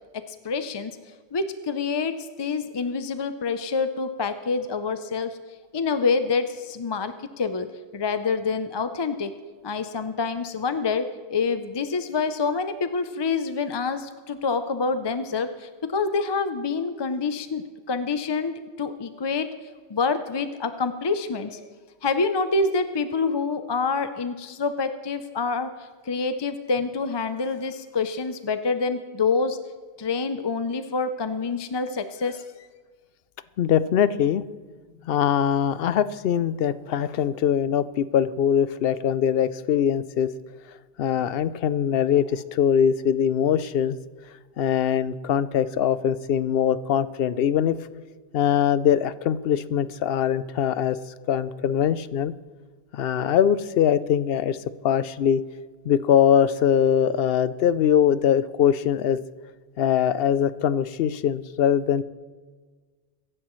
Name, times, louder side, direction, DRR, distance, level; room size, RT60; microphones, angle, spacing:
voice 1, 0.1-1.0 1.3-5.4 5.7-9.3 9.6-19.5 19.9-21.7 22.0-29.6 30.0-32.5, left 4 dB, 35° left, 9 dB, 0.4 m, -27 dB
voice 2, 33.6-34.4 35.0-40.3 41.0-44.0 44.6-47.8 48.3-51.0 51.3-52.3 52.9-54.6 54.8-55.4 55.9-59.2 59.8-62.0, left 9 dB, 65° left, 15 dB, 0.7 m, -22 dB
23.0 x 11.0 x 3.1 m, 1.5 s
omnidirectional pair, 1.1 m